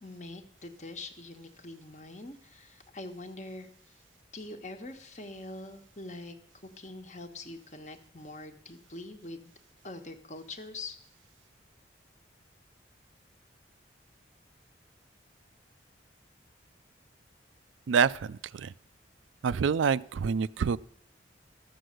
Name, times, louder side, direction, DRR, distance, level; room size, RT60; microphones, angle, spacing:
voice 1, 0.0-3.9 4.3-6.4 6.6-9.5 9.8-11.0, left 2 dB, 40° left, 7 dB, 1.2 m, -44 dB
voice 2, 17.9-18.7 19.4-20.8, right 6 dB, 90° right, 18 dB, 0.4 m, -27 dB
13.5 x 7.8 x 6.5 m, 0.67 s
head